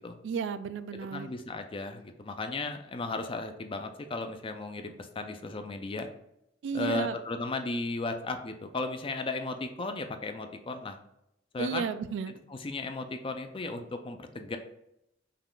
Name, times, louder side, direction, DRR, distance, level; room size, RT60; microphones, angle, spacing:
voice 1, 0.2-1.3 6.6-7.2 11.6-12.4, right 5 dB, 65° right, 12 dB, 0.3 m, -33 dB
voice 2, 1.1-6.1 6.7-11.0 11.5-11.9 12.6-14.6, left 3 dB, 30° left, 6 dB, 0.4 m, -35 dB
5.6 x 2.4 x 3.7 m, 0.81 s
head